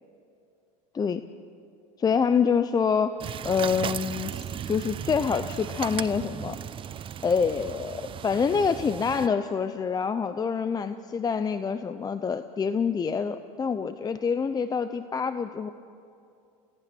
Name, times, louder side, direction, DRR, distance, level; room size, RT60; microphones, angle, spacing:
voice 1, 2.0-3.2 3.4-6.6 7.2-15.7, left 6 dB, 20° left, 11 dB, 0.7 m, -26 dB
sound 1, 3.2-9.3, right 9 dB, 30° right, 0.6 m, -36 dB
28.5 x 17.0 x 6.2 m, 2.5 s
supercardioid pair, 100°, 17 cm